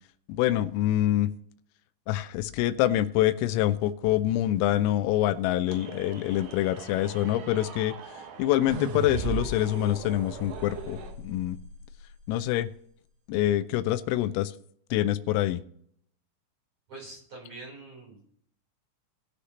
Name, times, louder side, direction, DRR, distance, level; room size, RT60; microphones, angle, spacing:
voice 1, 0.3-1.3 2.1-7.9 8.4-11.0 11.2-11.6 12.3-12.7 13.3-14.5 14.9-15.6, left 13 dB, 85° left, 13 dB, 3.2 m, -25 dB
sound 1, 5.7-11.1, right 6 dB, 65° right, 2.7 m, -43 dB
sound 2, 8.7-11.9, right 4 dB, 85° right, 4.7 m, -36 dB
voice 2, 16.9-18.2, right 3 dB, 30° right, -3 dB, 3.9 m, -44 dB
20.0 x 6.6 x 2.9 m, 0.66 s
omnidirectional pair, 6.0 m